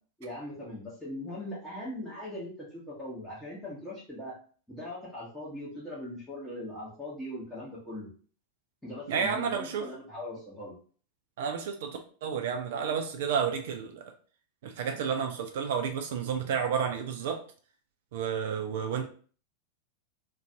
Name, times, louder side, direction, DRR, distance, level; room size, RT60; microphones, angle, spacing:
voice 1, 0.2-4.4 4.7-8.1 8.8-10.8, left 1 dB, 5° left, 0.9 m, -40 dB
voice 2, 9.1-9.9 11.4-14.0 14.6-17.4 18.1-19.1, right 7 dB, 55° right, 0.3 m, -31 dB
2.5 x 2.2 x 2.7 m
figure-of-eight pair, 90°, 0 cm